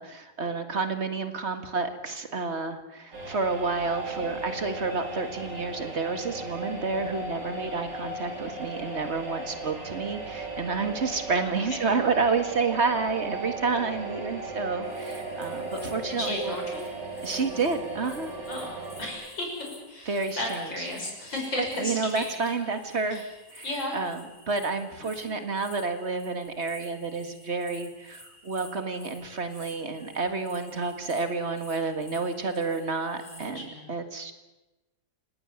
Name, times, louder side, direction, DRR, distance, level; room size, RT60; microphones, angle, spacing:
voice 1, 0.0-16.6 17.2-18.3 20.1-20.9 21.6-23.2 23.5-23.6 23.9-34.3, right 4 dB, 40° right, 8 dB, 2.0 m, -30 dB
sound 1, 3.1-19.1, right 2 dB, 70° right, 5.1 m, -36 dB
voice 2, 11.4-11.8 16.1-16.8 18.5-18.7 19.0-22.2 23.1-23.3 23.6-24.0 25.2-25.3 33.2-33.9, left 1 dB, 90° left, 0 dB, 7.3 m, -34 dB
sound 2, 14.8-33.5, left 1 dB, 20° left, 5.3 m, -52 dB
28.5 x 18.0 x 7.3 m, 1.1 s
omnidirectional pair, 2.0 m